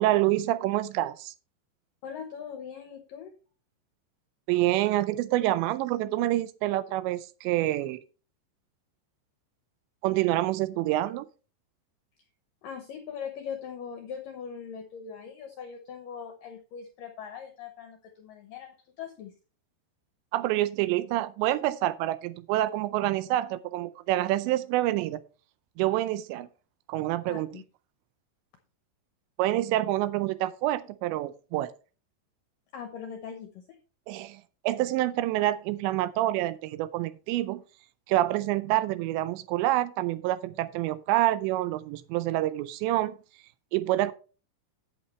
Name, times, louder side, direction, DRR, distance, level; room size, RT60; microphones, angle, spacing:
voice 1, 0.0-1.3 4.5-8.0 10.0-11.3 20.3-25.2 25.8-26.5 26.9-27.5 29.4-31.7 34.1-37.6 38.1-43.2 43.7-44.1, right 15 dB, 80° right, 14 dB, 2.8 m, -27 dB
voice 2, 2.0-3.3 12.6-18.7 19.0-19.3 27.3-27.6 32.7-33.8, left 7 dB, 80° left, 5 dB, 2.0 m, -40 dB
11.0 x 8.6 x 3.2 m, 0.35 s
omnidirectional pair, 5.3 m